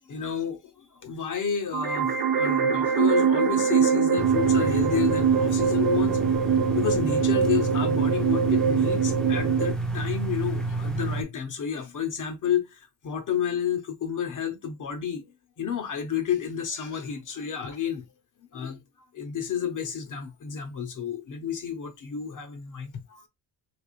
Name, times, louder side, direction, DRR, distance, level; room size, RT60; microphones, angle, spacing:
voice 1, 0.0-6.2 6.5-15.3 15.6-18.0 18.5-18.8 19.1-23.2, left 8 dB, 50° left, 0.9 m, -31 dB
sound 1, 1.7-9.7, right 7 dB, 60° right, 0.7 m, -23 dB
sound 2, 4.2-11.2, right 1 dB, ahead, 0.5 m, -30 dB
3.4 x 3.4 x 2.5 m
cardioid pair, 140°, 40 cm